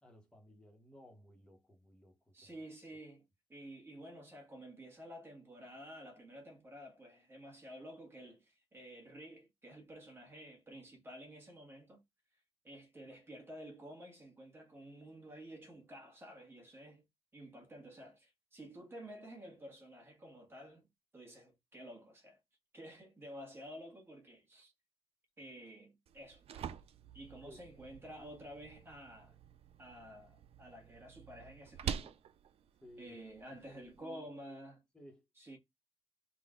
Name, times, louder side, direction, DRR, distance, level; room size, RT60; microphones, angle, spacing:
voice 1, 0.0-2.5 27.4-27.6 32.8-33.2 33.7-34.6 34.9-35.2, equal, 10° left, 1.2 m, -58 dB
voice 2, 2.3-12.0 12.6-17.0 17.3-20.9 21.1-22.4 22.7-24.7 25.4-26.7 27.1-29.4 29.8-32.2 33.0-34.8 35.4-35.6, equal, 25° right, 1.6 m, -51 dB
sound 1, 26.1-34.0, right 8 dB, 75° right, 0.4 m, -47 dB
3.9 x 2.5 x 3.7 m
wide cardioid pair, 160°, 10 cm